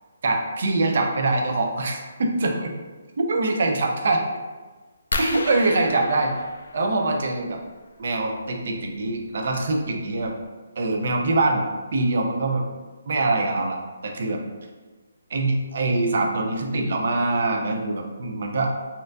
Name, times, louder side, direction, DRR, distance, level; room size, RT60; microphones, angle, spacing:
voice 1, 0.2-2.7 3.2-4.2 5.2-6.3 6.7-7.6 8.0-10.3 10.8-11.6 11.9-12.6 13.1-14.4 15.3-18.7, right 2 dB, 50° right, 2 dB, 0.5 m, -23 dB
sound 1, 5.1-7.5 9.1-9.3 9.9-10.0 10.2-10.5, left 3 dB, 75° left, 0.3 m, -33 dB
4.2 x 2.5 x 2.5 m, 1.3 s
hypercardioid pair, 175°, 0 cm